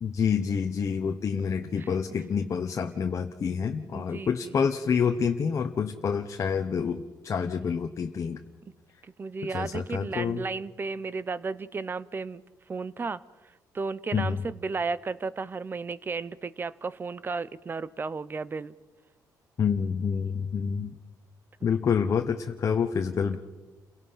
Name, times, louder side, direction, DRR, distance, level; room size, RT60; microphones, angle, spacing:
voice 1, 0.0-8.4 9.5-10.4 14.1-14.4 19.6-20.9 21.6-23.4, left 6 dB, 45° left, 5 dB, 1.1 m, -28 dB
voice 2, 3.9-4.6 9.0-12.4 12.7-13.2 13.7-18.7 21.6-21.8, right 4 dB, 30° right, 18 dB, 0.7 m, -34 dB
29.5 x 17.5 x 5.7 m, 1.2 s
cardioid pair, 110°, 7 cm